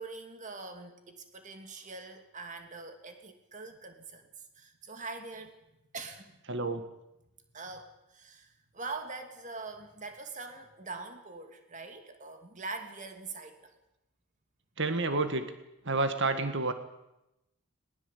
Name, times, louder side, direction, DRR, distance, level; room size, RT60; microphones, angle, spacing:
voice 1, 0.0-4.3 4.5-5.6 5.9-6.4 7.5-13.7, right 3 dB, 35° right, 6 dB, 2.6 m, -43 dB
voice 2, 6.5-6.9 14.8-15.5 15.9-16.7, right 3 dB, 55° right, 9 dB, 1.8 m, -29 dB
21.0 x 20.0 x 8.4 m, 0.89 s
head